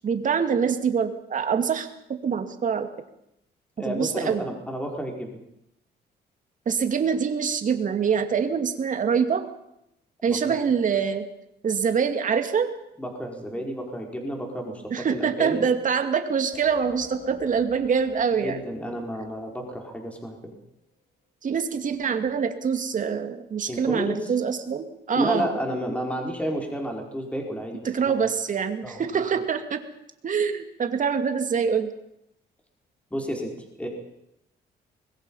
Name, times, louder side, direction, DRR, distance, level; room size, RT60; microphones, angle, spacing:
voice 1, 0.0-2.9 3.9-4.4 6.7-9.5 10.2-11.3 11.6-12.7 14.9-18.6 21.4-25.6 27.8-29.8 30.2-31.9, right 6 dB, 45° right, 7 dB, 2.4 m, -25 dB
voice 2, 3.8-5.3 10.3-10.4 13.0-15.7 18.4-20.5 23.7-24.3 25.1-28.1 28.8-29.0 33.1-33.5 33.8-33.9, equal, 5° left, 1 dB, 5.0 m, -31 dB
sound 1, 16.5-20.1, left 4 dB, 75° left, 7.4 m, -44 dB
25.5 x 21.5 x 5.7 m, 0.81 s
cardioid pair, 110°, 18 cm